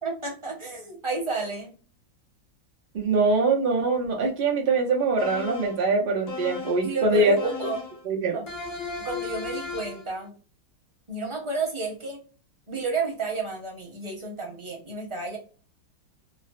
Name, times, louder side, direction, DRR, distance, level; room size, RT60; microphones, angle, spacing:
voice 1, 0.0-1.7 6.8-7.8 8.3-8.4 9.0-10.3 11.1-12.2 12.7-15.4, right 3 dB, 25° right, -1 dB, 0.6 m, -31 dB
voice 2, 2.9-7.3 8.0-8.4, right 3 dB, 85° right, 0 dB, 0.4 m, -23 dB
sound 1, 5.2-5.8 6.3-6.9 7.4-8.0 8.5-10.1, left 4 dB, 50° left, 0.7 m, -35 dB
3.7 x 2.0 x 2.4 m, 0.38 s
omnidirectional pair, 1.9 m